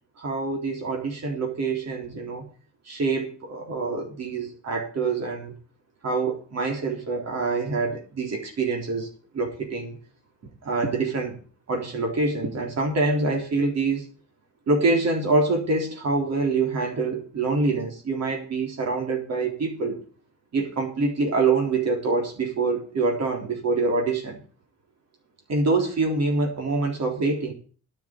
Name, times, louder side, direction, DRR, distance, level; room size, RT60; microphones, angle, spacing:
voice 1, 0.2-2.5 2.9-5.5 6.0-9.1 9.3-10.0 10.6-11.4 11.7-14.1 14.7-20.0 20.5-24.4 25.5-27.5, right 3 dB, 60° right, 2 dB, 3.8 m, -25 dB
9.8 x 6.6 x 8.9 m, 0.40 s
cardioid pair, 90°, 30 cm